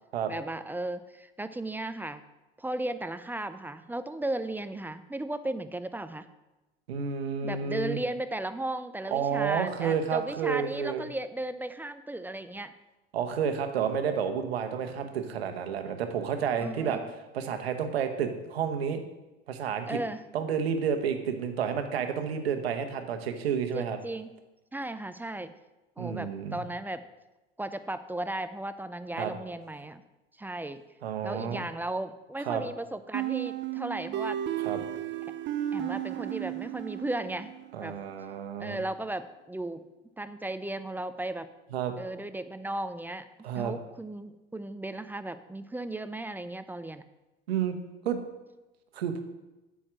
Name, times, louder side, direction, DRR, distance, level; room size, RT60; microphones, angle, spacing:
voice 1, 0.3-2.2 2.6-6.3 7.4-12.7 16.6-17.1 19.9-20.2 23.7-24.3 24.7-25.5 26.0-27.0 27.6-30.0 30.4-30.8 31.2-34.4 35.7-37.5 37.8-38.0 38.6-39.9 40.2-41.5 42.0-43.3 43.6-47.0, right 1 dB, 5° right, 12 dB, 0.4 m, -35 dB
voice 2, 6.9-8.0 9.1-11.0 13.1-17.0 17.3-19.0 19.5-20.0 20.3-24.0 26.0-26.7 29.2-29.3 31.0-31.6 32.4-32.6 34.6-34.8 37.7-38.8 41.7-42.0 43.4-43.7 47.5-47.8 48.0-48.2 48.9-49.2, right 7 dB, 80° right, 6 dB, 1.0 m, -30 dB
sound 1, 33.1-37.8, right 12 dB, 40° right, 0.7 m, -34 dB
8.6 x 4.7 x 6.1 m, 1.0 s
hypercardioid pair, 75°, 31 cm